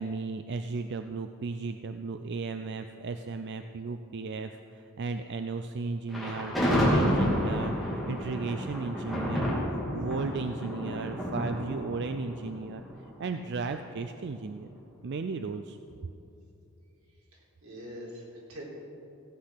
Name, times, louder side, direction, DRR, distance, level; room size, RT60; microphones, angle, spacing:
voice 1, 0.0-9.6 9.9-12.8 13.2-14.7 15.0-15.8, right 4 dB, 55° right, 8 dB, 0.4 m, -35 dB
Thunder, 6.1-13.3, equal, ahead, 2.9 m, -30 dB
voice 2, 17.0-18.6, equal, 85° right, -3 dB, 3.7 m, -45 dB
16.0 x 8.5 x 5.8 m, 2.7 s
head